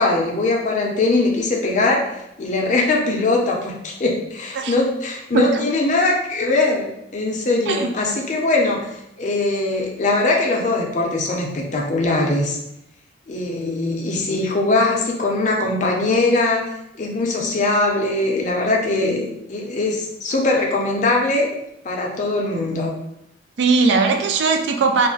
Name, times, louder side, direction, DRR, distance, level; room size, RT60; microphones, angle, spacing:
voice 1, 0.0-8.9 9.2-12.6 13.3-16.6 17.0-21.5 21.8-22.9, left 2 dB, 40° left, -1 dB, 0.5 m, -21 dB
voice 2, 23.6-25.1, right 4 dB, 65° right, 5 dB, 0.3 m, -18 dB
2.4 x 2.0 x 3.7 m, 0.83 s
head